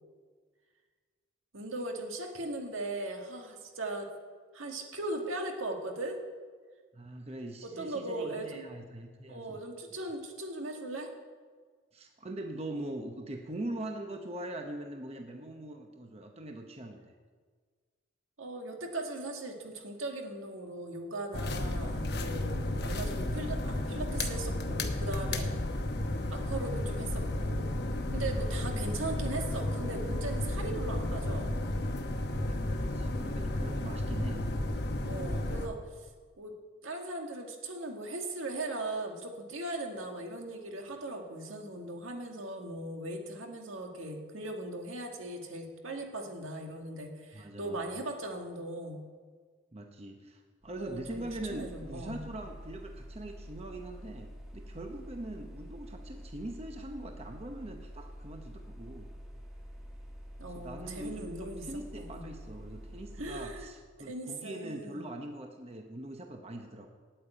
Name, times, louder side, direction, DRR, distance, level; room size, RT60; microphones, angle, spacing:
voice 1, 1.5-4.1 4.5-6.2 7.6-8.7 9.3-11.1 18.4-25.5 26.3-27.8 28.1-31.5 35.1-36.1 36.4-36.5 36.8-49.0 50.8-51.2 51.5-52.2 60.4-62.3 63.2-63.7 64.0-65.1, right 2 dB, 80° right, 3 dB, 1.8 m, -39 dB
voice 2, 6.9-9.6 11.9-17.1 30.5-30.6 32.5-34.5 47.3-48.0 49.7-59.1 60.4-66.9, right 1 dB, 30° right, 4 dB, 0.9 m, -42 dB
sound 1, 21.3-35.7, left 1 dB, 50° left, 1.0 m, -33 dB
sound 2, 50.6-63.7, equal, 5° right, 1.4 m, -47 dB
8.8 x 8.7 x 9.0 m, 1.5 s
head